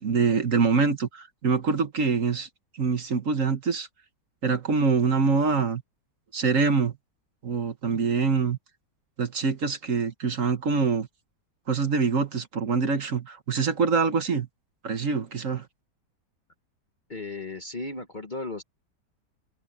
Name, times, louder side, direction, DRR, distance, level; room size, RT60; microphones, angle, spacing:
voice 1, 0.0-2.5 2.8-3.9 4.4-5.8 6.3-6.9 7.4-8.6 9.2-11.1 11.7-14.5 14.8-15.7, right 5 dB, 50° right, 1.5 m, -25 dB
voice 2, 17.1-18.6, left 3 dB, 30° left, 1.2 m, -35 dB
omnidirectional pair, 1.9 m